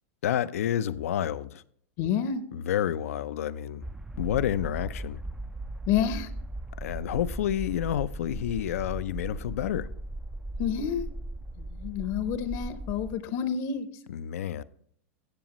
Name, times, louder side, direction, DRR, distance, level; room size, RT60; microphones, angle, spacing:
voice 1, 0.2-1.6 2.5-3.9 4.2-5.2 6.8-9.9 14.1-14.6, left 10 dB, 80° left, 0.5 m, -29 dB
voice 2, 2.0-2.4 5.9-6.3 10.6-11.0 11.6-13.9, left 8 dB, 50° left, 0.7 m, -29 dB
sound 1, 3.8-13.2, right 1 dB, 5° right, 0.3 m, -38 dB
14.5 x 7.1 x 3.0 m
hypercardioid pair, 125°, 8 cm